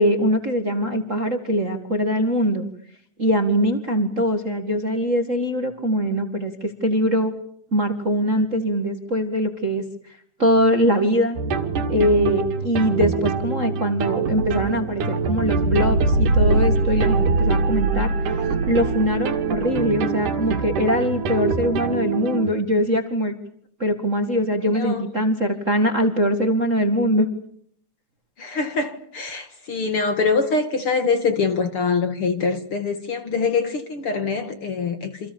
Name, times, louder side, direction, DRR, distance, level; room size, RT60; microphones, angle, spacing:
voice 1, 0.0-2.7 3.2-7.3 7.7-11.4 11.9-23.3 23.8-27.3, equal, 30° right, 1.7 m, -22 dB
sound 1, 11.4-22.5, right 3 dB, 70° right, 3.6 m, -23 dB
voice 2, 24.7-25.1 28.4-35.3, left 4 dB, 45° left, 2.3 m, -24 dB
28.5 x 27.0 x 7.1 m
omnidirectional pair, 3.9 m